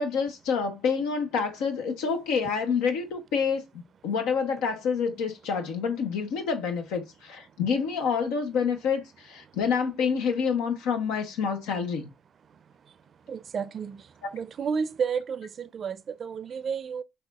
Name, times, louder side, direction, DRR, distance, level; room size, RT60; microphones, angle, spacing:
voice 1, 0.0-3.6 4.0-12.1, left 6 dB, 90° left, 0.7 m, -27 dB
voice 2, 13.3-14.0 14.3-17.0, right 6 dB, 55° right, 0.4 m, -31 dB
6.3 x 2.4 x 2.3 m
supercardioid pair, 65°, 0 cm